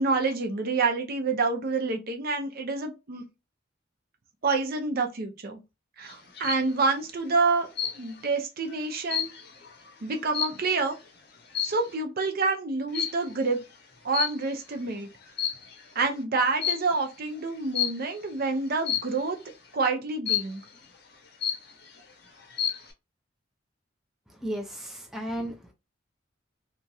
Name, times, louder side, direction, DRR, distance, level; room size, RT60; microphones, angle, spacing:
voice 1, 0.0-3.2 4.4-5.6 6.0-7.7 8.0-9.3 10.0-11.0 11.6-13.6 14.0-15.1 16.0-19.4 19.7-20.6, right 3 dB, 50° right, 0.6 m, -27 dB
sound 1, 6.1-6.7 7.8-8.3 8.7-10.9 11.5-11.9 12.9-13.3 14.1-14.7 15.2-15.9 16.6-17.0 17.7-18.1 18.9-19.3 20.3-20.7 21.1-21.2 21.4-22.0 22.4-22.9, left 9 dB, 55° left, 0.7 m, -30 dB
voice 2, 24.3-25.7, right 1 dB, ahead, 0.4 m, -34 dB
2.9 x 2.3 x 2.6 m
head